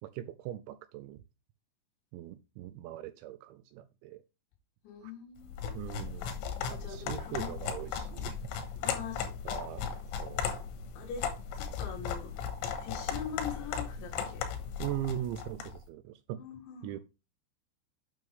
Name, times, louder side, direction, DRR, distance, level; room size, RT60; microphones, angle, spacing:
voice 1, 0.0-1.2 2.1-4.2 5.0-5.1 5.7-6.4 6.7-8.5 9.4-9.9 10.2-10.5 14.8-16.4 16.8-17.0, right 12 dB, 80° right, 2.7 m, -40 dB
voice 2, 4.8-5.6 6.6-7.5 8.8-9.3 11.0-11.3 11.5-12.3 12.8-14.5 16.4-17.0, left 7 dB, 70° left, 4.3 m, -43 dB
sound 1, 5.5-15.8, left 7 dB, 85° left, 3.8 m, -37 dB
9.3 x 6.2 x 3.5 m
omnidirectional pair, 5.6 m